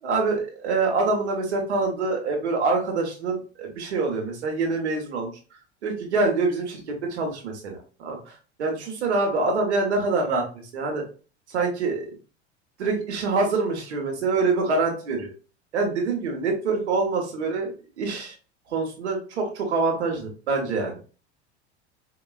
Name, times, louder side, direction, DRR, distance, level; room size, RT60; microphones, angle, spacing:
voice 1, 0.0-5.3 5.8-8.2 8.6-11.0 11.5-12.1 12.8-15.3 15.7-18.3 18.7-21.0, right 3 dB, 75° right, 1 dB, 1.5 m, -25 dB
5.0 x 2.9 x 2.4 m, 0.36 s
hypercardioid pair, 80°, 34 cm